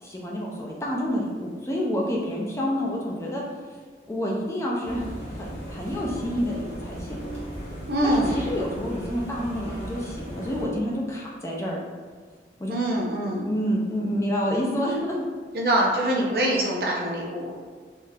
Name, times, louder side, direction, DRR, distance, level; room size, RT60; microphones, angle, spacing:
voice 1, 0.0-3.4 4.1-7.2 8.0-11.8 12.6-12.7 13.4-15.2, equal, 15° left, -3 dB, 0.4 m, -28 dB
sound 1, 4.8-10.7, equal, 40° left, 0.9 m, -36 dB
voice 2, 7.9-8.3 12.7-13.5 15.5-17.6, right 1 dB, 60° right, -2 dB, 0.6 m, -24 dB
3.6 x 2.5 x 2.7 m, 1.5 s
head